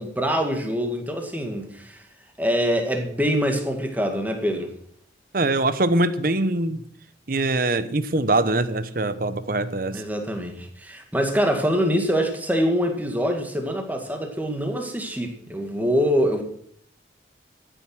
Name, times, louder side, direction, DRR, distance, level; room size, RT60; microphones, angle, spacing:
voice 1, 0.0-2.0 2.4-4.7 9.9-16.4, equal, 10° right, 4 dB, 2.0 m, -24 dB
voice 2, 5.3-6.8 7.3-10.0, right 2 dB, 50° right, 13 dB, 1.0 m, -23 dB
14.0 x 9.1 x 6.2 m, 0.64 s
head